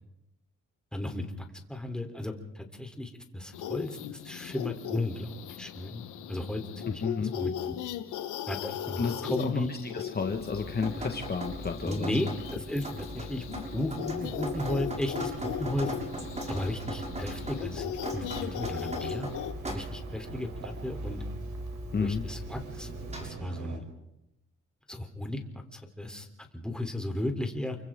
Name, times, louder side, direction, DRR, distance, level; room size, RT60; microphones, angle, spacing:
voice 1, 0.9-7.7 8.5-9.7 11.8-13.4 13.7-15.9 16.5-19.3 19.7-21.2 22.0-22.9 23.2-23.9 24.9-26.3 26.5-27.8, left 1 dB, 5° left, 3 dB, 3.6 m, -35 dB
sound 1, 3.5-19.5, left 10 dB, 85° left, 1.2 m, -38 dB
voice 2, 7.0-7.4 9.0-12.1 21.9-22.2, left 5 dB, 30° left, 4 dB, 1.7 m, -32 dB
Drip, 10.3-23.3, right 1 dB, 25° right, 6.7 m, -39 dB
sound 2, 14.1-23.8, right 5 dB, 85° right, 4.0 m, -45 dB
29.0 x 24.5 x 3.8 m, 0.89 s
cardioid pair, 90°, 30 cm